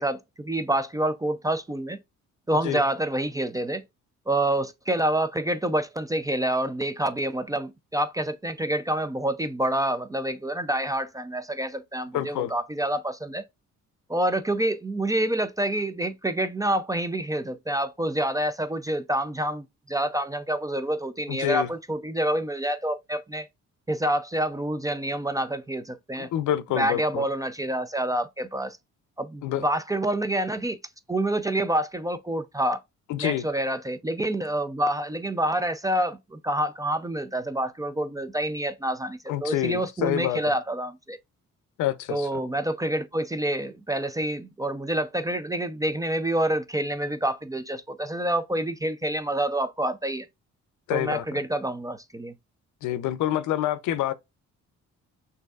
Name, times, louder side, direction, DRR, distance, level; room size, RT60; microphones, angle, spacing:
voice 1, 0.0-2.0 2.5-3.8 4.3-13.4 14.1-23.5 23.9-26.3 26.8-28.8 29.2-30.8 31.1-32.8 33.2-41.2 42.1-50.3 50.9-52.3, right 1 dB, 10° right, 0.3 m, -27 dB
voice 2, 12.1-12.5 21.3-21.7 26.2-27.2 29.4-29.6 33.1-33.5 39.3-40.5 41.8-42.4 50.9-51.4 52.8-54.1, left 12 dB, 75° left, 0.5 m, -27 dB
6.3 x 2.6 x 2.3 m
cardioid pair, 90°, 30 cm